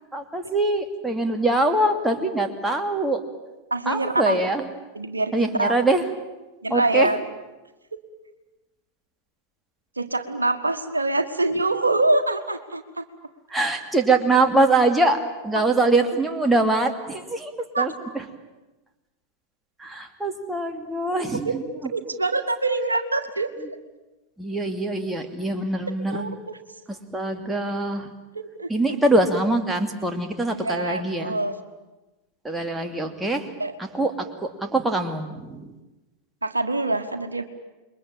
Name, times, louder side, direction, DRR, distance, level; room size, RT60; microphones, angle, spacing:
voice 1, 0.1-3.2 3.9-4.7 5.3-6.0 6.7-7.1 13.5-18.2 19.8-21.9 23.6-23.7 24.4-26.2 26.9-28.1 28.7-31.5 32.4-33.5 33.8-35.7, right 2 dB, 5° right, 4 dB, 2.7 m, -23 dB
voice 2, 3.7-4.4 4.9-5.3 5.6-5.8 6.6-7.2 10.0-13.0 17.7-17.9 21.4-21.5 21.9-23.5 26.1-26.4 28.3-28.7 30.6-31.6 33.6-33.7 36.4-37.4, right 2 dB, 80° right, 8 dB, 1.6 m, -24 dB
28.0 x 22.5 x 9.0 m, 1.1 s
figure-of-eight pair, 90°, 0 cm